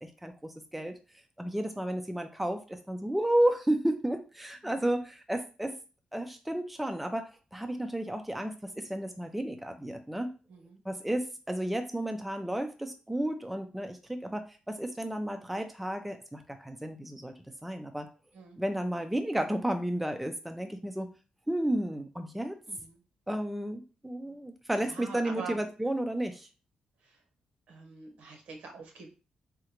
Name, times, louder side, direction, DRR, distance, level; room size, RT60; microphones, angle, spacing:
voice 1, 0.0-0.9 1.4-5.7 6.1-10.3 10.9-17.3 17.6-18.1 18.6-21.1 21.5-22.6 23.3-26.5, right 1 dB, 5° right, 6 dB, 0.3 m, -32 dB
voice 2, 10.5-10.8 18.3-18.6 22.7-23.0 24.8-25.6 27.0-27.2 27.7-29.1, right 4 dB, 75° right, 3 dB, 0.9 m, -45 dB
3.7 x 2.1 x 2.9 m, 0.34 s
cardioid pair, 125°, 2 cm